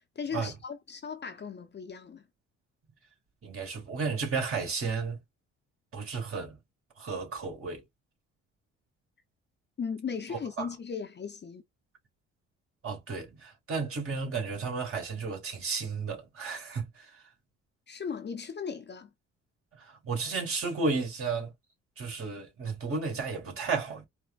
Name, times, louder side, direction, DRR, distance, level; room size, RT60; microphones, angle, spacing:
voice 1, 0.2-2.3 9.8-11.6 17.9-19.1, left 6 dB, 35° left, 0.7 m, -37 dB
voice 2, 3.4-5.2 5.9-6.6 7.0-7.8 10.3-10.7 12.8-17.2 19.7-21.5 22.0-24.0, right 4 dB, 45° right, 2.3 m, -33 dB
4.4 x 2.1 x 2.4 m
supercardioid pair, 60°, 31 cm